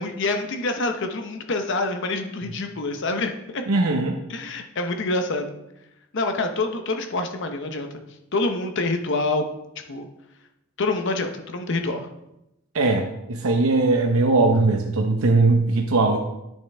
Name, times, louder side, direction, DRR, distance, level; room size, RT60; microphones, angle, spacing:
voice 1, 0.0-3.7 4.3-5.5 6.1-7.9 8.3-9.4 9.9-10.1 10.8-12.1, left 2 dB, 60° left, 6 dB, 0.8 m, -26 dB
voice 2, 3.7-4.2 12.7-16.2, right 3 dB, 80° right, 2 dB, 0.8 m, -20 dB
10.0 x 6.4 x 3.4 m, 0.87 s
head